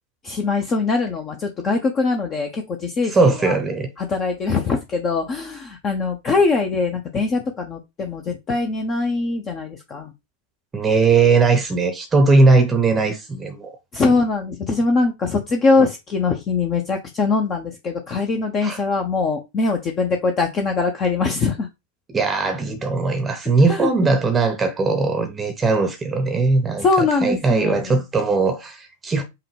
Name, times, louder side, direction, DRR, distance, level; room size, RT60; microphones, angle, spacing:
voice 1, 0.2-3.5 4.0-10.1 13.9-21.7 23.7-23.9 26.8-28.0, left 4 dB, 30° left, 0.6 m, -22 dB
voice 2, 3.1-3.9 10.7-13.7 18.6-18.8 22.1-26.9 27.2-29.2, right 3 dB, 15° right, 0.7 m, -19 dB
5.6 x 2.2 x 3.3 m
figure-of-eight pair, 90°, 0 cm